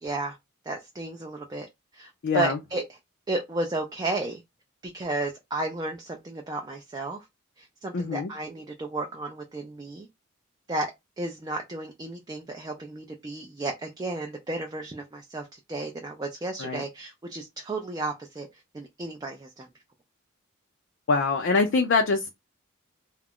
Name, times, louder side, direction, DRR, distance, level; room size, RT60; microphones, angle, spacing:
voice 1, 0.0-0.4 0.7-1.7 1.9-2.8 3.3-4.4 4.9-7.2 7.6-10.1 10.7-10.9 11.2-19.7, right 2 dB, 20° right, 0.3 m, -33 dB
voice 2, 2.2-2.6 7.9-8.3 16.6-16.8 21.1-22.3, left 4 dB, 55° left, 0.4 m, -24 dB
2.3 x 2.0 x 3.5 m
head